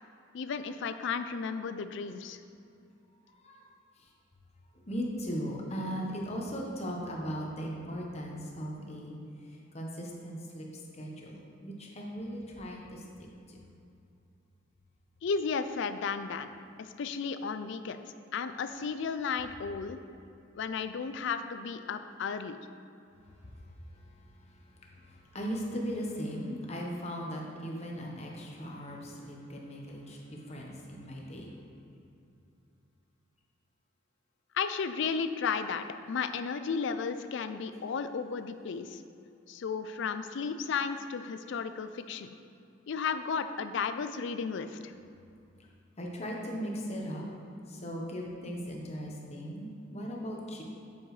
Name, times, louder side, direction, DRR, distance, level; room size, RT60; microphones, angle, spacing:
voice 1, 0.3-2.4 15.2-16.5 16.8-18.0 18.3-20.0 20.5-22.6 34.5-39.0 39.5-42.3 42.9-44.9, left 5 dB, 65° left, 10 dB, 0.4 m, -34 dB
voice 2, 3.3-3.7 4.0-4.1 4.9-10.7 10.9-13.6 23.2-31.6 46.0-47.2 47.7-50.6, equal, 35° left, -1 dB, 1.1 m, -38 dB
7.9 x 7.0 x 3.2 m, 2.6 s
head